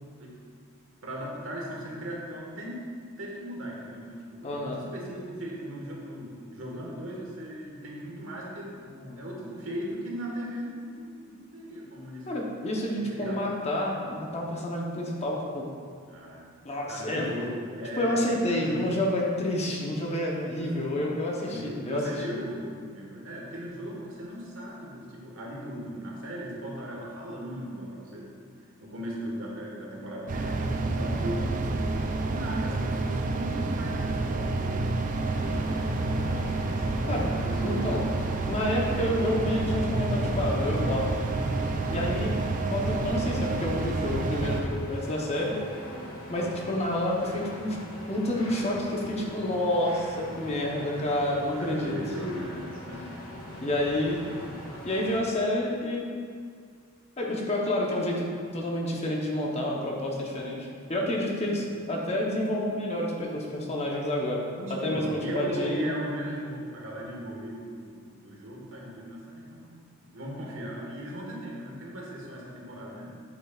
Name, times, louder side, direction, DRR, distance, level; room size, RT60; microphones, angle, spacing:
voice 1, 1.0-2.8 3.2-8.7 9.2-12.3 13.1-13.5 16.1-16.5 16.9-19.0 20.6-20.9 21.4-28.3 28.8-31.8 32.2-34.8 35.3-35.7 36.5-37.9 50.3-50.4 51.6-53.1 54.2-54.4 61.5-61.6 64.5-69.8 70.1-73.2, equal, 75° right, -3 dB, 1.4 m, -38 dB
voice 2, 4.4-4.8 8.9-9.2 12.3-15.7 16.6-17.3 18.0-22.0 37.1-37.2 37.6-38.0 38.5-41.1 41.9-42.3 42.7-45.6 46.3-47.8 48.1-52.0 53.6-54.2 54.8-56.1 57.2-64.4 64.7-66.0, left 1 dB, 30° left, -2 dB, 0.9 m, -29 dB
sound 1, 30.3-44.6, right 2 dB, 40° right, 0.4 m, -29 dB
sound 2, 35.2-55.2, equal, 80° left, 1.6 m, -42 dB
7.9 x 7.2 x 2.4 m, 2.1 s
head